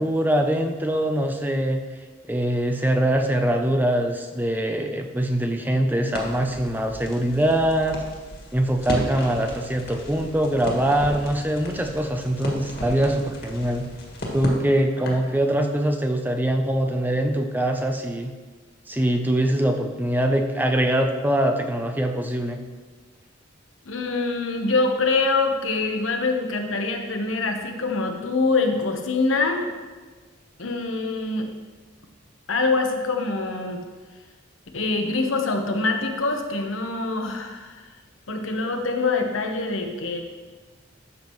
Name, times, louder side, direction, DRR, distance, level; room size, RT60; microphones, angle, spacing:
voice 1, 0.0-1.8 2.3-8.0 8.5-13.9 14.3-18.3 18.9-22.6, right 1 dB, 10° right, 4 dB, 0.5 m, -23 dB
Crackle, 6.1-15.3, left 1 dB, 55° left, 1.9 m, -35 dB
voice 2, 23.8-29.7 30.6-31.5 32.5-33.8 34.7-37.9 38.3-40.2, left 3 dB, 80° left, 4 dB, 1.1 m, -24 dB
12.0 x 7.3 x 3.1 m, 1.4 s
head